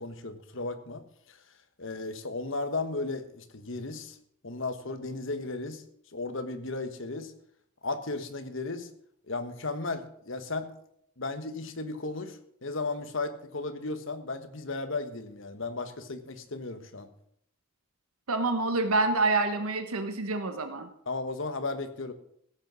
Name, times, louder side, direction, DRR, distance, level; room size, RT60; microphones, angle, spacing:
voice 1, 0.0-1.4 1.8-4.2 4.4-5.8 6.1-7.3 7.8-8.9 9.3-10.7 11.2-17.1 21.1-22.1, left 3 dB, 60° left, 9 dB, 1.3 m, -35 dB
voice 2, 18.3-20.9, right 3 dB, 85° right, 8 dB, 1.2 m, -27 dB
16.0 x 8.1 x 6.2 m, 0.69 s
head